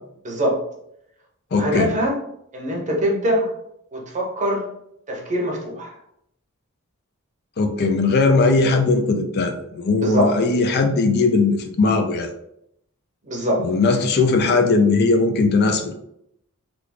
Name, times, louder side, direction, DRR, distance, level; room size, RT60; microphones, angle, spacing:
voice 1, 0.2-0.6 1.5-2.2 2.5-3.5 3.9-4.6 5.1-5.9 10.0-10.4 13.3-13.7, equal, 35° right, 0 dB, 0.8 m, -23 dB
voice 2, 1.5-1.9 7.6-12.3 13.6-16.0, left 3 dB, 50° left, 5 dB, 0.4 m, -19 dB
3.4 x 2.3 x 3.3 m, 0.76 s
head